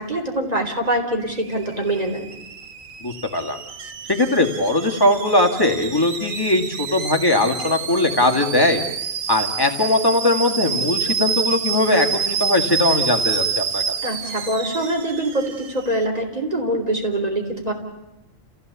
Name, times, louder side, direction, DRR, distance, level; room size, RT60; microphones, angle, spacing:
voice 1, 0.0-2.3 14.0-17.7, right 1 dB, 30° right, 3 dB, 3.7 m, -24 dB
Alarm / Boiling, 1.2-16.0, right 6 dB, 80° right, 1.6 m, -28 dB
voice 2, 3.0-3.6 4.1-8.8 9.3-13.8, left 2 dB, 15° left, 2 dB, 2.3 m, -20 dB
29.5 x 16.0 x 8.4 m, 0.95 s
omnidirectional pair, 1.4 m